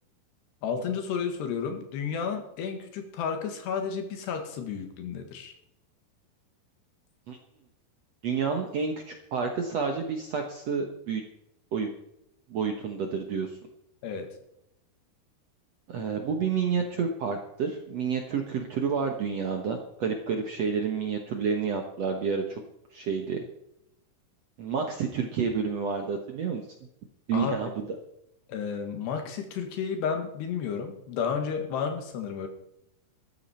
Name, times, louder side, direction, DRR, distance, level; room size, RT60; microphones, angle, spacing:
voice 1, 0.6-5.5 14.0-14.3 27.3-27.6 28.5-32.5, left 6 dB, 90° left, 6 dB, 3.9 m, -32 dB
voice 2, 8.2-11.2 11.7-11.9 12.5-13.5 15.9-22.6 22.9-23.4 24.6-26.6 27.3-28.0, right 6 dB, 65° right, 3 dB, 1.6 m, -29 dB
14.0 x 13.5 x 4.4 m, 0.82 s
omnidirectional pair, 4.7 m